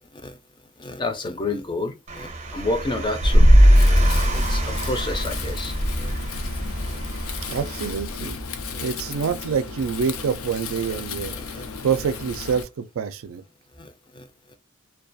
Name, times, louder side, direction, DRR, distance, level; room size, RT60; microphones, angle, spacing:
voice 1, 0.8-3.5 4.3-6.1 6.8-7.0 8.7-8.8 10.9-11.0 11.3-11.7 13.8-14.6, left 2 dB, 25° left, 0.4 m, -30 dB
Car, 2.1-7.9, right 2 dB, 35° right, 0.6 m, -33 dB
sound 1, 3.2-8.8, equal, 55° left, 0.7 m, -19 dB
Wind, 3.7-12.6, left 5 dB, 90° left, 0.5 m, -35 dB
voice 2, 7.5-8.4 8.8-11.3 11.8-13.4, right 6 dB, 75° right, 0.4 m, -26 dB
2.3 x 2.2 x 2.5 m
head